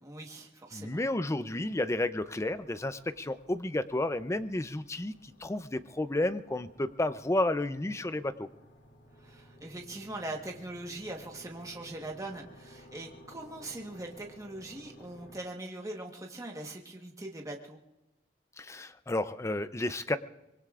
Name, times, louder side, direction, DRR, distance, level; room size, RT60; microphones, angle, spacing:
voice 1, 0.0-1.0 9.2-17.8, right 2 dB, 20° right, 1 dB, 1.2 m, -41 dB
voice 2, 0.7-8.5 18.6-20.2, left 1 dB, 15° left, 12 dB, 0.5 m, -31 dB
sound 1, 1.2-15.4, equal, 75° left, 2.6 m, -56 dB
24.5 x 21.5 x 2.5 m, 0.94 s
head